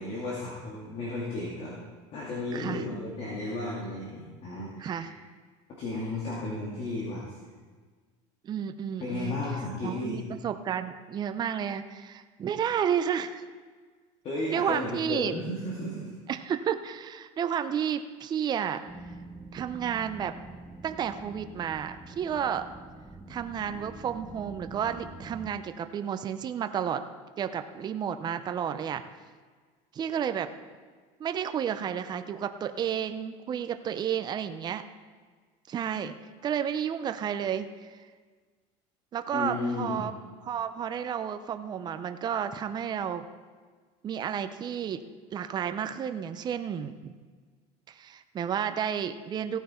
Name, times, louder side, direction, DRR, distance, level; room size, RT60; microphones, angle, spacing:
voice 1, 0.0-1.8 2.1-5.2 5.7-7.2 9.0-10.2 14.2-16.1 39.3-40.1, left 2 dB, 40° left, -5 dB, 2.3 m, -34 dB
voice 2, 2.5-2.9 4.8-5.1 8.4-9.4 9.8-13.5 14.5-15.3 16.3-18.8 19.5-20.3 20.8-22.6 23.3-27.0 27.4-29.0 29.9-30.5 31.2-34.8 35.7-36.2 36.4-38.0 39.1-40.2 40.4-43.3 44.0-45.0 45.3-47.1 47.9-49.6, right 8 dB, 30° right, 9 dB, 0.6 m, -31 dB
sound 1, 18.9-25.5, right 2 dB, 5° right, 1.0 m, -45 dB
15.5 x 9.2 x 4.4 m, 1.5 s
cardioid pair, 140°, 15 cm